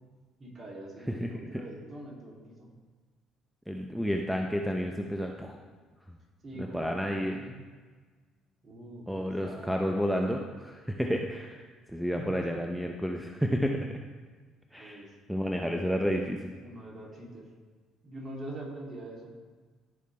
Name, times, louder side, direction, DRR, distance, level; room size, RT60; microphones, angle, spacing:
voice 1, 0.4-2.7 6.4-7.6 8.6-10.2 12.1-12.4 14.8-16.0 16.6-17.5 18.0-19.3, right 1 dB, 40° right, -2 dB, 2.8 m, -44 dB
voice 2, 1.2-1.6 3.7-5.6 6.6-7.4 9.1-14.0 14.7-15.0 15.3-16.5, equal, ahead, 2 dB, 0.7 m, -31 dB
15.0 x 5.0 x 3.3 m, 1.4 s
hypercardioid pair, 55°, 0 cm